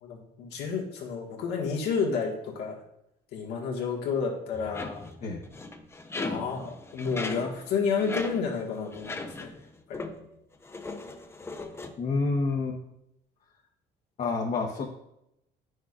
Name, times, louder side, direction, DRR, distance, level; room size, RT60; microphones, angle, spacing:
voice 1, 0.0-2.8 3.3-5.0 6.2-9.5 9.9-10.1, left 5 dB, 85° left, -1 dB, 1.6 m, -30 dB
sound 1, 4.5-9.7 9.9-10.3 10.6-11.9, left 2 dB, 15° left, 0.6 m, -38 dB
voice 2, 12.0-12.8 14.2-14.9, left 3 dB, 45° left, -1 dB, 1.0 m, -28 dB
9.3 x 6.3 x 2.5 m, 0.81 s
cardioid pair, 110°, 17 cm